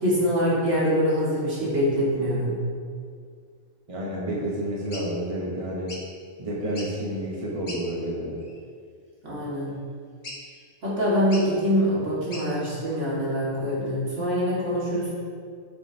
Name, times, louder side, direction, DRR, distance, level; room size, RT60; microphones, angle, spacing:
voice 1, 0.0-2.6 9.2-9.7 10.8-15.1, equal, 65° right, -8 dB, 2.5 m, -24 dB
voice 2, 3.9-5.9 6.4-8.4, right 1 dB, 25° right, -4 dB, 1.2 m, -30 dB
sound 1, 4.9-5.1 5.9-6.1 6.6-7.0 7.7-7.8 8.4-8.6 10.2-10.6 11.3-11.5 12.3-12.5, left 1 dB, 35° left, 1.1 m, -39 dB
8.9 x 6.9 x 2.9 m, 2.1 s
omnidirectional pair, 1.3 m